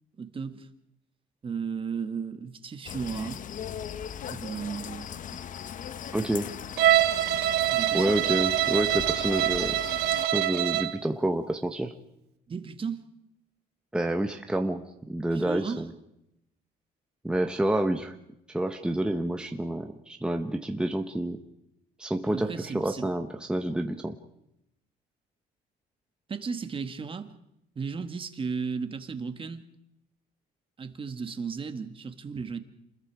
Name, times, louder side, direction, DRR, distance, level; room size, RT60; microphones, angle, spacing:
voice 1, 0.2-0.7 1.4-3.4 4.3-5.4 7.7-8.4 12.5-13.0 15.3-15.8 22.2-23.1 26.3-27.4 27.8-29.6 30.8-32.6, right 5 dB, 30° right, 1.9 m, -35 dB
sound 1, 2.8-10.3, left 8 dB, 50° left, 1.0 m, -39 dB
voice 2, 6.1-6.5 7.9-9.8 10.3-11.9 13.9-15.9 17.2-18.2 18.5-21.4 22.0-24.2, right 1 dB, 5° right, 1.3 m, -28 dB
Bowed string instrument, 6.8-11.0, right 13 dB, 75° right, 1.3 m, -25 dB
28.0 x 21.0 x 4.9 m
cardioid pair, 110°, 17 cm